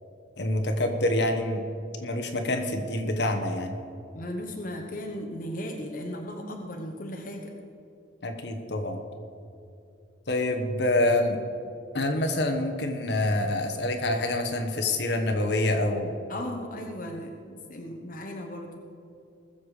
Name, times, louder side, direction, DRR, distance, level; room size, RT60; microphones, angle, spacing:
voice 1, 0.4-1.6 2.0-3.7 8.2-9.0 10.3-11.4 11.9-16.2, left 1 dB, 65° left, 5 dB, 1.2 m, -26 dB
voice 2, 4.1-7.5 16.3-18.8, left 1 dB, 45° left, 2 dB, 1.1 m, -36 dB
20.5 x 7.2 x 5.0 m, 2.6 s
head